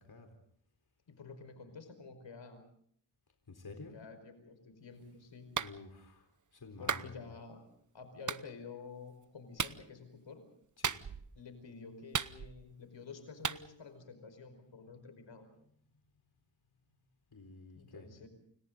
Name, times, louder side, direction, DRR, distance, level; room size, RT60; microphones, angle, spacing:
voice 1, 1.1-2.6 3.9-5.7 6.8-7.6 7.9-10.4 11.4-15.5 17.8-18.3, left 4 dB, 85° left, 8 dB, 5.2 m, -50 dB
voice 2, 3.5-4.0 5.6-7.2 10.8-10.9 17.3-18.1, left 3 dB, 60° left, 5 dB, 4.2 m, -50 dB
Clapping, 5.6-5.8 6.9-7.1 8.3-8.4 9.6-9.8 10.8-11.3 12.1-12.7 13.4-13.6, right 6 dB, 45° right, 0.9 m, -35 dB
29.5 x 29.0 x 4.0 m, 0.65 s
cardioid pair, 65°, 44 cm